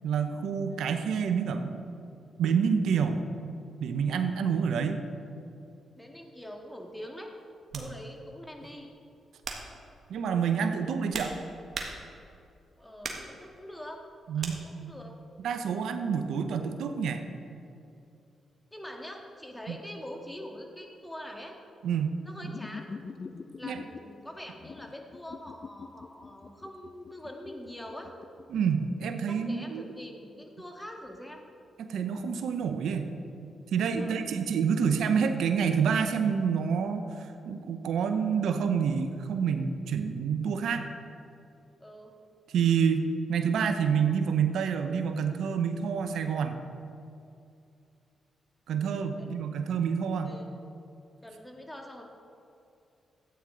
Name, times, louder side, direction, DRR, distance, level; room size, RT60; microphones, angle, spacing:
voice 1, 0.0-1.8 2.4-3.2 3.8-5.0 7.7-7.9 10.1-11.3 14.3-14.6 15.4-17.2 19.7-19.8 21.8-22.2 23.7-23.8 28.5-29.8 31.8-33.1 33.7-40.8 42.5-46.6 48.7-50.3, right 6 dB, 80° right, 7 dB, 0.6 m, -28 dB
voice 2, 6.0-7.4 7.8-8.9 12.8-14.0 14.3-15.2 18.7-21.6 22.2-23.0 23.6-28.1 29.3-31.4 34.0-34.3 41.8-42.2 49.2-49.7 50.2-50.5 51.2-52.0, left 1 dB, 10° left, 2 dB, 1.8 m, -44 dB
sound 1, 6.4-6.6 7.7-7.9 8.6-8.8 9.4-9.8 10.7-12.3 13.0-13.4 14.4-14.6, right 4 dB, 60° right, 1.5 m, -39 dB
sound 2, 22.4-24.0 24.6-28.8, left 4 dB, 50° left, 0.5 m, -43 dB
12.5 x 9.1 x 3.8 m, 2.6 s
supercardioid pair, 55°, 0 cm